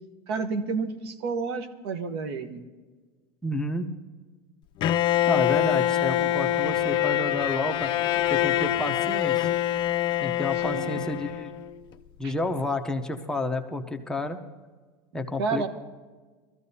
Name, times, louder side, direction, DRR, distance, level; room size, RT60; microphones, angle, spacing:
voice 1, 0.3-2.6 10.6-11.0 12.2-12.3 15.4-15.7, right 4 dB, 90° right, 8 dB, 1.2 m, -30 dB
voice 2, 3.4-3.8 5.3-7.9 8.3-9.5 10.2-11.5 12.2-14.4 15.1-15.7, left 2 dB, 5° left, 4 dB, 0.8 m, -30 dB
Bowed string instrument, 4.8-11.7, left 12 dB, 40° left, 0.4 m, -25 dB
21.0 x 14.0 x 2.8 m, 1.4 s
supercardioid pair, 140°, 13 cm